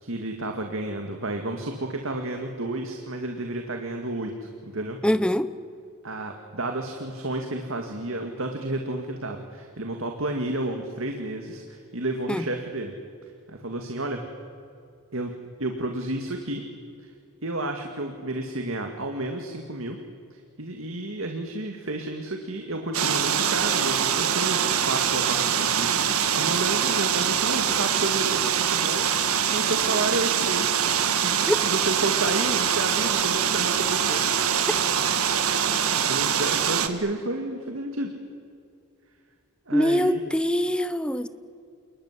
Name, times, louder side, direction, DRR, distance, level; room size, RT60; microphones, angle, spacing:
voice 1, 0.0-5.0 6.0-12.9 13.5-14.2 15.1-15.3 15.6-16.6 17.0-17.1 17.4-20.0 20.6-30.7 31.1-34.2 36.0-38.1 39.7-40.2, right 2 dB, 65° right, 3 dB, 2.3 m, -31 dB
voice 2, 5.0-5.5 12.3-12.4 31.5-31.6 39.7-41.3, equal, 5° left, 13 dB, 0.9 m, -23 dB
sound 1, 22.9-36.9, right 8 dB, 80° right, 1.7 m, -24 dB
29.0 x 20.5 x 9.9 m, 2.5 s
head